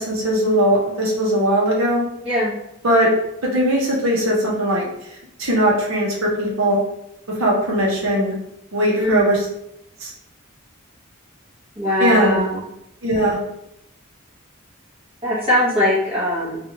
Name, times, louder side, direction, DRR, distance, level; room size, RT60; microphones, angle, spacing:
voice 1, 0.0-2.1 2.8-3.1 3.4-4.9 5.4-6.8 7.4-8.3 8.7-9.5 10.0-10.1 12.0-12.4 13.0-13.4, equal, 75° right, -3 dB, 0.8 m, -19 dB
voice 2, 9.0-9.4 11.8-12.6 15.2-16.6, left 1 dB, 25° right, -8 dB, 0.9 m, -20 dB
2.8 x 2.4 x 2.8 m, 0.80 s
head